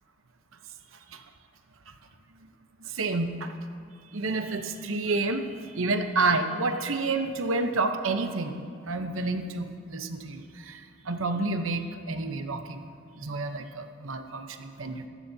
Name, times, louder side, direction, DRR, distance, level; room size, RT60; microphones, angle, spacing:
voice 1, 2.8-3.5 4.1-12.9 13.2-15.1, right 3 dB, 75° right, 7 dB, 0.8 m, -30 dB
14.5 x 14.0 x 2.7 m, 2.2 s
head